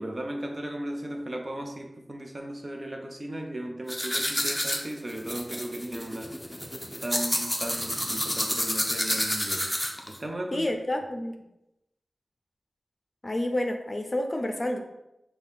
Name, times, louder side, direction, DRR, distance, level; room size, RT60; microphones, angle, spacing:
voice 1, 0.0-6.3 7.0-9.7 10.1-10.7, right 1 dB, 40° right, 2 dB, 0.7 m, -36 dB
sound 1, 3.9-10.2, equal, 10° left, 0.7 m, -29 dB
voice 2, 10.5-11.4 13.2-14.8, left 1 dB, 40° left, 5 dB, 0.6 m, -29 dB
5.5 x 2.3 x 4.0 m, 0.89 s
cardioid pair, 45°, 0 cm